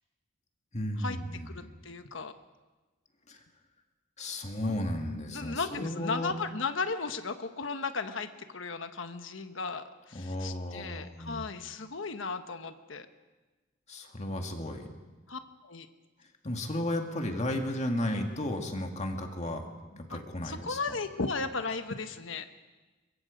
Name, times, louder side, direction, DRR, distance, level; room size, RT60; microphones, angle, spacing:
voice 1, 0.7-1.7 3.3-3.4 4.2-6.3 10.1-11.5 13.9-14.9 16.4-20.8, left 1 dB, 35° left, 3 dB, 2.0 m, -34 dB
voice 2, 1.4-2.3 4.6-4.8 5.3-13.1 15.3-15.9 20.1-20.2 20.4-22.5, left 4 dB, 70° left, 8 dB, 1.2 m, -35 dB
23.0 x 22.5 x 5.2 m, 1.2 s
head